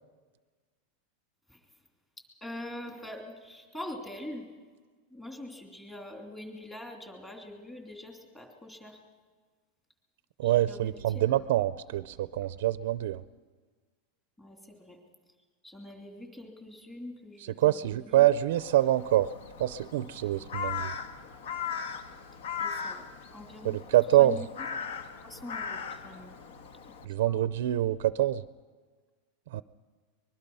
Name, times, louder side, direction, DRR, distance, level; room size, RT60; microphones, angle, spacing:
voice 1, 2.4-4.5 5.1-9.0 10.4-11.2 14.4-15.0 15.6-18.3 22.6-23.0 23.3-23.8 24.2-24.5 25.2-26.3 27.0-27.4, left 1 dB, 10° left, 2 dB, 2.8 m, -44 dB
voice 2, 10.4-13.2 17.4-19.3 19.6-20.9 23.6-24.5 27.1-28.4 29.5-29.6, right 13 dB, 65° right, 14 dB, 0.5 m, -25 dB
Crow, 18.6-27.1, left 6 dB, 65° left, 1.4 m, -39 dB
24.0 x 21.5 x 5.5 m, 1.5 s
supercardioid pair, 170°, 0 cm